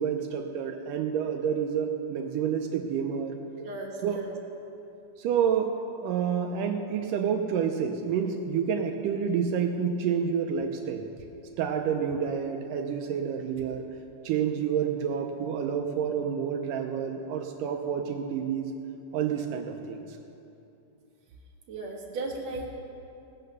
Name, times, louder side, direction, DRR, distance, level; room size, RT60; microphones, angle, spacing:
voice 1, 0.0-3.4 4.0-4.2 5.2-11.1 11.6-13.9 14.2-18.7 19.1-20.2, right 7 dB, 80° right, 5 dB, 2.3 m, -29 dB
voice 2, 3.6-4.3 21.7-22.7, right 2 dB, 60° right, 0 dB, 2.4 m, -36 dB
18.5 x 9.0 x 6.6 m, 2.8 s
omnidirectional pair, 3.9 m